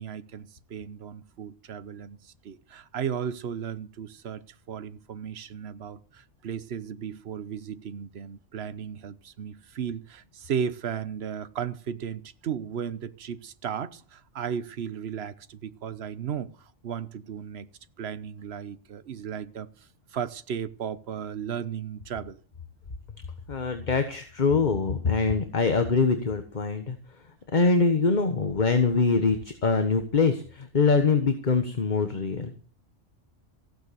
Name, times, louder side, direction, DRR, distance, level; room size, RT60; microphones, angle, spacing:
voice 1, 0.0-17.7 18.0-19.7 20.1-22.4, right 8 dB, 60° right, 1.1 m, -35 dB
voice 2, 23.5-27.0 27.5-32.6, left 4 dB, 40° left, 1.4 m, -24 dB
15.0 x 9.2 x 6.9 m
omnidirectional pair, 1.3 m